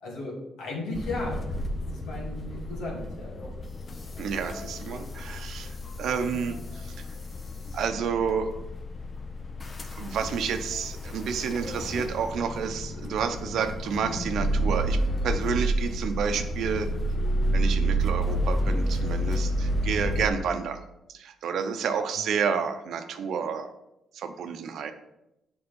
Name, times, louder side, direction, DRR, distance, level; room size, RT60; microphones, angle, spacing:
voice 1, 0.0-1.5 1.9-3.5 6.3-6.4 14.3-14.5 22.1-22.2, left 2 dB, 85° left, -2 dB, 2.5 m, -35 dB
sound 1, 0.9-20.3, right 1 dB, 35° left, 0.9 m, -30 dB
voice 2, 4.2-7.0 7.7-8.5 9.9-16.9 17.5-20.8 21.1-23.7 24.1-24.9, right 6 dB, 75° right, 8 dB, 0.8 m, -30 dB
7.0 x 4.7 x 5.4 m, 0.88 s
cardioid pair, 95°, 0 cm